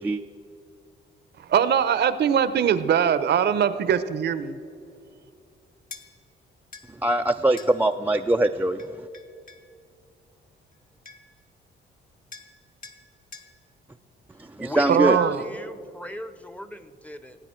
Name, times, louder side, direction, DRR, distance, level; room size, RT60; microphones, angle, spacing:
voice 1, 1.4-4.6 14.9-15.4, right 8 dB, 60° right, 13 dB, 0.7 m, -21 dB
sound 1, 5.9-6.1 6.7-6.9 7.6-7.7 8.8-9.7 10.7-10.8 11.1-11.4 12.3-12.5 12.8-13.0 13.3-13.5, left 4 dB, 45° left, 1.2 m, -44 dB
voice 2, 7.0-8.8 14.4-15.2, right 1 dB, 10° right, 4 dB, 0.4 m, -22 dB
voice 3, 14.6-17.4, equal, 5° left, 12 dB, 0.7 m, -35 dB
18.0 x 8.9 x 4.4 m, 2.4 s
cardioid pair, 90°, 20 cm